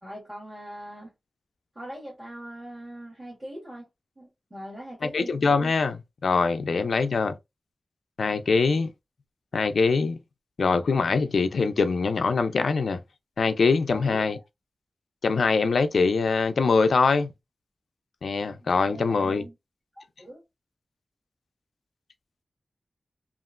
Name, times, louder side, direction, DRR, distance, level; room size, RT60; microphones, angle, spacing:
voice 1, 0.0-1.1 1.7-3.9 4.2-5.3 13.9-14.4 18.6-19.5 20.2-20.4, right 1 dB, 15° right, 1.5 m, -41 dB
voice 2, 5.0-7.4 8.2-8.9 9.5-10.2 10.6-13.0 13.4-14.4 15.2-17.3 18.2-19.4, left 4 dB, 80° left, 0.3 m, -23 dB
2.9 x 2.4 x 2.4 m
wide cardioid pair, 95°, 0 cm